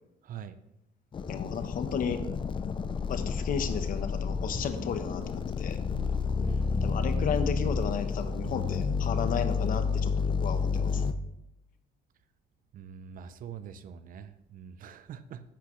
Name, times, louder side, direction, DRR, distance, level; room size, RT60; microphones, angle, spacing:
voice 1, 0.2-0.6 6.4-7.0 12.7-15.4, right 8 dB, 55° right, 13 dB, 0.6 m, -44 dB
sound 1, 1.1-11.1, left 5 dB, 30° left, 0.5 m, -30 dB
voice 2, 1.3-2.3 3.1-5.8 6.8-11.0, left 7 dB, 55° left, 9 dB, 1.0 m, -34 dB
10.0 x 8.3 x 3.1 m, 0.87 s
cardioid pair, 110°, 17 cm